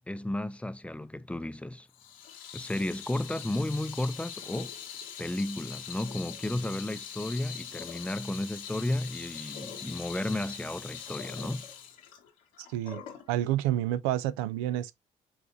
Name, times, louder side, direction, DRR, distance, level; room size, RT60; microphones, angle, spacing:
voice 1, 0.0-1.9 2.5-4.7 5.2-11.7, left 1 dB, 5° left, 0.5 m, -33 dB
Water tap faucet / Sink (filling or washing), 1.9-13.3, left 8 dB, 90° left, 1.3 m, -43 dB
voice 2, 12.7-13.0 13.3-15.0, right 13 dB, 85° right, 0.4 m, -29 dB
6.0 x 3.4 x 2.6 m
hypercardioid pair, 60°, 17 cm